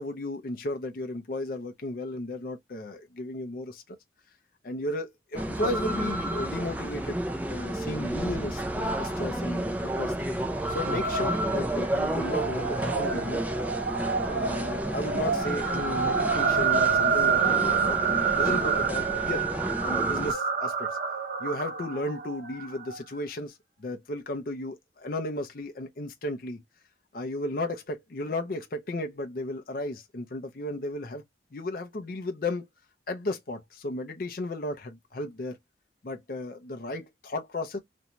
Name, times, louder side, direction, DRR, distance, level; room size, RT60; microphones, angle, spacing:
voice 1, 0.0-4.0 4.6-7.2 7.5-10.1 10.7-13.4 14.2-19.5 19.8-20.9 21.4-26.6 27.1-31.2 31.5-32.6 33.1-35.6 36.0-37.8, left 1 dB, 50° left, 0.5 m, -34 dB
sound 1, 5.3-20.3, right 1 dB, 10° right, 0.3 m, -31 dB
sound 2, 10.6-23.0, right 6 dB, 50° right, 0.7 m, -28 dB
2.6 x 2.2 x 2.9 m
head